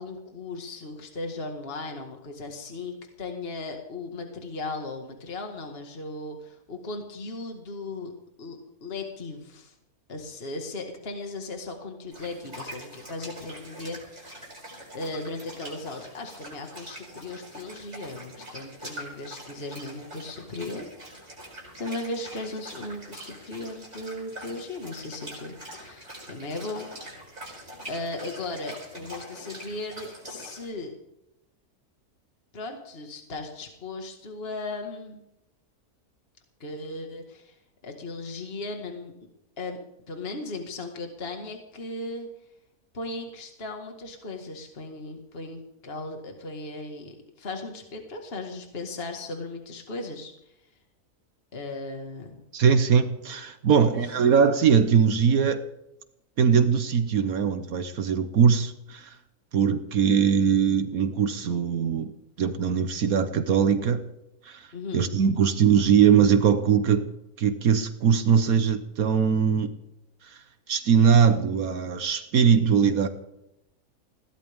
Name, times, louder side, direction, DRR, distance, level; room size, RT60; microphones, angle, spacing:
voice 1, 0.0-8.1 8.4-9.7 10.1-14.4 14.9-20.9 21.7-26.9 27.5-30.9 32.5-35.2 36.6-37.6 37.8-39.1 39.6-39.8 40.1-42.3 42.9-50.5 51.5-52.4 53.8-54.0 64.7-65.0, left 2 dB, 40° left, 3 dB, 2.1 m, -37 dB
sound 1, 12.1-30.7, right 1 dB, 50° right, 7.6 m, -44 dB
voice 2, 52.5-55.6 56.4-59.1 59.5-62.1 62.4-64.0 64.5-64.7 64.9-67.1 67.4-69.7 70.7-73.1, right 7 dB, 70° right, 10 dB, 1.4 m, -21 dB
21.5 x 17.0 x 3.6 m, 0.84 s
omnidirectional pair, 1.6 m